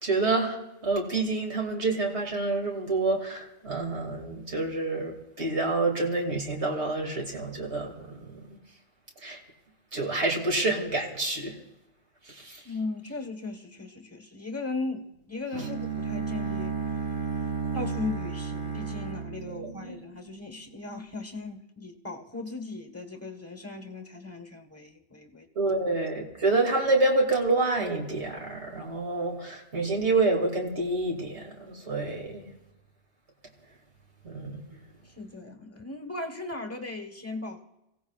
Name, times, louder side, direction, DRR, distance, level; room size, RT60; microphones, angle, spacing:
voice 1, 0.0-8.6 9.2-9.4 9.9-11.6 12.3-12.6 19.5-19.9 25.6-32.5 34.2-34.8, right 2 dB, 60° right, 0 dB, 2.6 m, -28 dB
voice 2, 12.6-17.0 17.7-25.5 35.0-37.6, left 3 dB, 10° left, 6 dB, 1.1 m, -37 dB
Bowed string instrument, 15.5-20.5, right 5 dB, 40° right, 2.1 m, -33 dB
26.5 x 16.0 x 2.4 m, 0.94 s
omnidirectional pair, 1.3 m